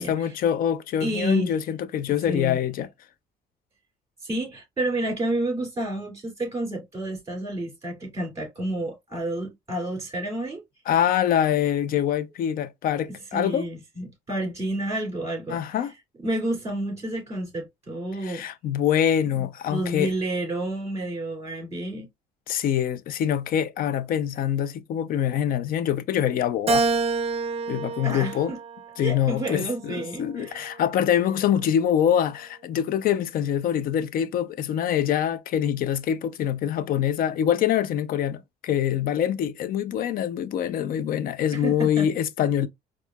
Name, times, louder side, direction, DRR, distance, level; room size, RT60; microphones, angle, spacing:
voice 1, 0.0-2.9 10.9-13.7 15.5-15.9 18.2-20.1 22.5-26.9 27.7-28.5 29.0-42.7, left 9 dB, 60° left, 0.5 m, -25 dB
voice 2, 1.0-1.6 2.3-2.6 4.2-10.6 13.3-15.6 16.2-18.4 19.4-22.1 28.0-28.6 29.0-30.8 41.5-42.1, right 1 dB, 20° right, 2.4 m, -30 dB
Keyboard (musical), 26.7-29.2 29.8-31.0, right 4 dB, 35° right, 0.6 m, -28 dB
4.4 x 2.4 x 2.3 m
cardioid pair, 110°, 17 cm